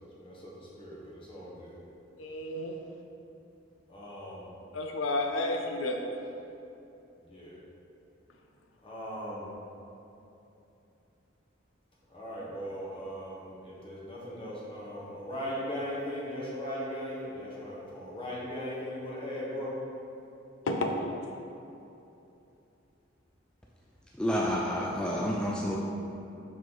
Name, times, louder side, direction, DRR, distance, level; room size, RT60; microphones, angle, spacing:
voice 1, 0.2-1.8 3.9-4.5 7.2-7.6 8.8-9.5 12.1-19.7, equal, 25° left, -6 dB, 1.4 m, -38 dB
voice 2, 2.2-2.8 4.7-6.0 20.7-20.9, left 2 dB, 80° left, 3 dB, 0.5 m, -31 dB
voice 3, 24.2-25.8, equal, 5° left, -3 dB, 0.3 m, -29 dB
6.2 x 5.0 x 3.9 m, 2.9 s
head